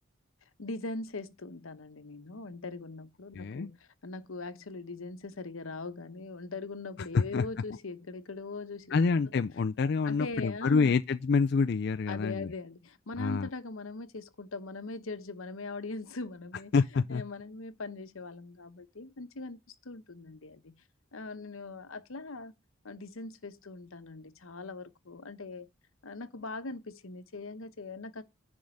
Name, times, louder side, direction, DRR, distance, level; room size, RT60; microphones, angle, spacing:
voice 1, 0.6-3.8 4.0-8.9 10.0-11.0 12.1-16.7 17.1-20.8 21.1-22.5 22.8-25.7 26.0-28.2, left 3 dB, 85° left, 1.0 m, -41 dB
voice 2, 3.4-3.7 7.1-7.5 8.9-12.5 13.2-13.5 16.7-17.2, left 4 dB, 50° left, 0.4 m, -27 dB
10.5 x 3.6 x 6.4 m
head